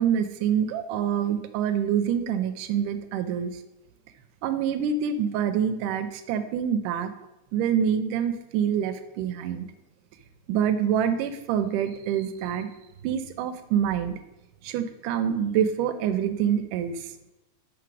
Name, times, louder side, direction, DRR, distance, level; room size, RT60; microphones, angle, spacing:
voice 1, 0.0-3.5 4.4-7.1 7.5-9.7 10.5-12.7 13.0-14.1 14.6-17.1, right 8 dB, 85° right, 10 dB, 2.2 m, -26 dB
6.3 x 6.1 x 4.6 m, 0.98 s
omnidirectional pair, 3.7 m